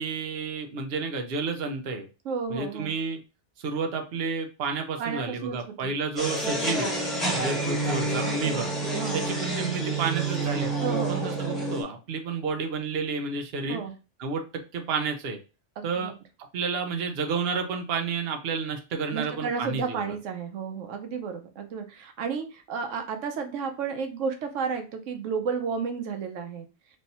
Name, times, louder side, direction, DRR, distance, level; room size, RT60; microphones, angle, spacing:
voice 1, 0.0-2.1 2.5-3.2 3.6-6.9 7.3-8.7 9.1-13.8 14.2-15.4 15.8-16.1 16.5-20.2, right 4 dB, 60° right, 5 dB, 0.9 m, -31 dB
voice 2, 2.2-2.9 5.0-5.9 8.4-8.6 8.9-9.2 10.8-11.3 13.7-13.9 15.8-16.1 19.1-26.7, right 5 dB, 90° right, 5 dB, 1.0 m, -32 dB
sound 1, 6.2-11.8, right 2 dB, ahead, 1.3 m, -28 dB
3.3 x 2.7 x 4.1 m, 0.31 s
omnidirectional pair, 1.2 m